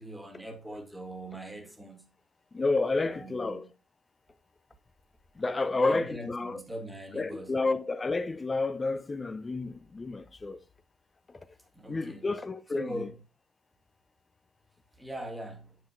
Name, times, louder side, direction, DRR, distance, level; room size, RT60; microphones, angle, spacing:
voice 1, 0.0-2.1 3.1-3.7 5.7-7.6 11.7-12.3 12.7-13.1 15.0-15.8, right 1 dB, 10° right, 1.5 m, -41 dB
voice 2, 2.5-3.7 5.4-6.6 7.1-10.6 11.8-13.1, left 3 dB, 30° left, 0.6 m, -30 dB
6.7 x 6.0 x 2.6 m
hypercardioid pair, 55°, 0 cm